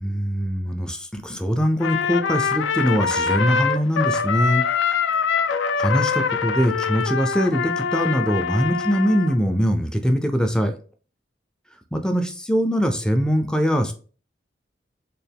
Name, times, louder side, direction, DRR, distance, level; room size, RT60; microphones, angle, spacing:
voice 1, 0.0-4.6 5.8-10.7 11.9-13.9, equal, 5° left, 6 dB, 0.4 m, -22 dB
Trumpet, 1.8-9.4, left 6 dB, 80° left, 0.4 m, -24 dB
4.2 x 2.3 x 3.5 m, 0.39 s
head